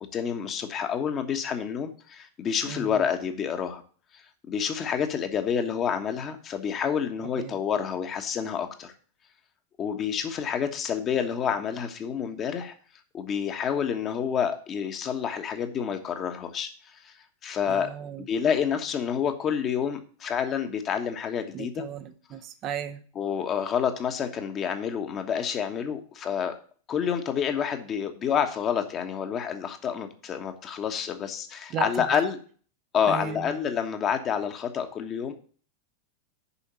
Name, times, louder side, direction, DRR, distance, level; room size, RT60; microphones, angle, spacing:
voice 1, 0.1-3.8 4.1-4.2 4.5-8.9 9.8-12.7 13.1-17.1 17.4-17.9 18.3-21.8 23.1-26.5 26.9-32.4 32.9-35.3, left 7 dB, 30° left, 1.3 m, -28 dB
voice 2, 2.6-3.1 7.4-7.6 17.7-18.3 21.5-23.0 31.7-31.9 33.0-33.5, right 8 dB, 35° right, 0.7 m, -35 dB
7.0 x 5.7 x 7.3 m
figure-of-eight pair, 90°, 0 cm